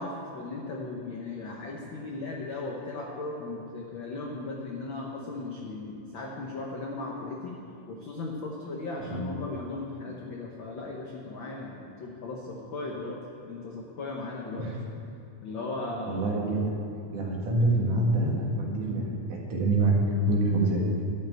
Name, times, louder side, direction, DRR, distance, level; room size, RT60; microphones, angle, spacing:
voice 1, 0.0-7.6 7.9-13.2 13.5-14.7 15.4-16.2, left 2 dB, 85° left, -1 dB, 1.0 m, -37 dB
voice 2, 16.1-16.8 17.1-20.0 20.3-20.8, right 2 dB, 80° right, -2 dB, 3.4 m, -26 dB
12.0 x 5.6 x 9.0 m, 2.7 s
omnidirectional pair, 3.6 m